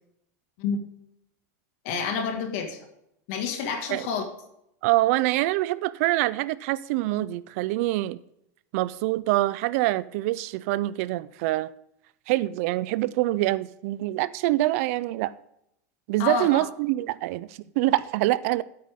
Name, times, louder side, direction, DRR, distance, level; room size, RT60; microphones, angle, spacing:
voice 1, 1.8-2.8 3.3-4.2 16.2-16.7, left 5 dB, 55° left, 2.0 m, -28 dB
voice 2, 4.8-8.2 8.7-11.7 12.3-15.3 16.1-18.6, right 17 dB, 55° right, 0.5 m, -25 dB
13.5 x 8.6 x 3.7 m
supercardioid pair, 160°, 9 cm